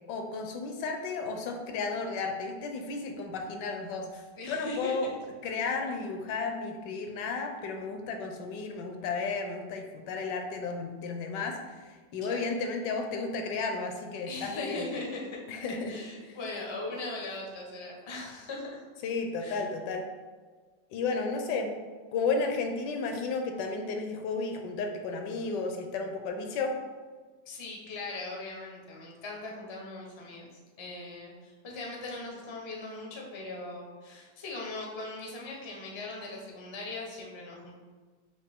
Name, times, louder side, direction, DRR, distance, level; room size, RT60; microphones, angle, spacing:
voice 1, 0.1-5.1 5.4-14.8 15.5-16.0 19.0-20.0 20.9-21.7 22.1-26.7, left 4 dB, 75° left, 4 dB, 1.2 m, -33 dB
voice 2, 4.4-5.0 12.2-12.5 14.3-15.4 15.9-18.8 19.4-19.6 27.5-30.5 30.8-37.7, left 2 dB, 50° left, -2 dB, 0.3 m, -39 dB
5.8 x 2.6 x 3.5 m, 1.4 s
omnidirectional pair, 1.9 m